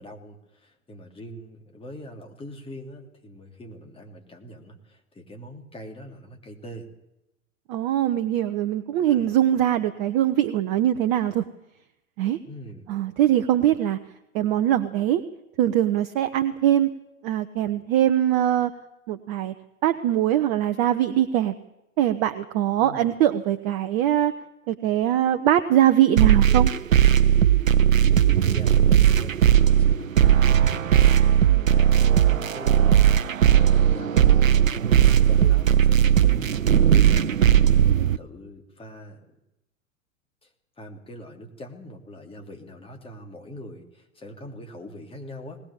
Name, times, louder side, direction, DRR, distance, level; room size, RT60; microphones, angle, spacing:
voice 1, 0.0-6.9 9.1-9.3 12.4-12.9 22.8-23.1 28.2-30.5 31.7-34.4 34.9-37.4 37.8-39.2 40.4-40.5 40.8-45.6, left 1 dB, 15° left, 3 dB, 3.2 m, -42 dB
voice 2, 7.7-11.4 12.2-12.4 12.9-14.0 14.3-15.2 15.6-16.9 17.2-18.7 19.1-19.5 19.8-21.5 22.0-24.3 24.7-26.7 31.5-31.7 38.0-38.1, right 11 dB, 40° right, 9 dB, 1.0 m, -22 dB
sound 1, 26.2-38.2, right 9 dB, 75° right, 0.7 m, -18 dB
20.0 x 19.5 x 7.3 m, 0.91 s
figure-of-eight pair, 95°, 40 cm